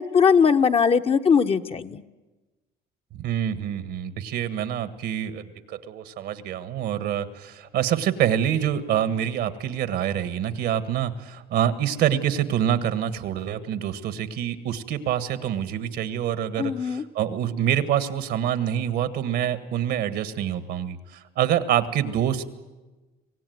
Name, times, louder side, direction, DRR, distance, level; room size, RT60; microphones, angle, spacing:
voice 1, 0.0-2.0 16.6-17.0, left 6 dB, 35° left, 8 dB, 0.9 m, -20 dB
voice 2, 3.1-22.5, right 10 dB, 75° right, 12 dB, 1.6 m, -26 dB
25.0 x 17.5 x 9.4 m, 1.2 s
cardioid pair, 110°, 17 cm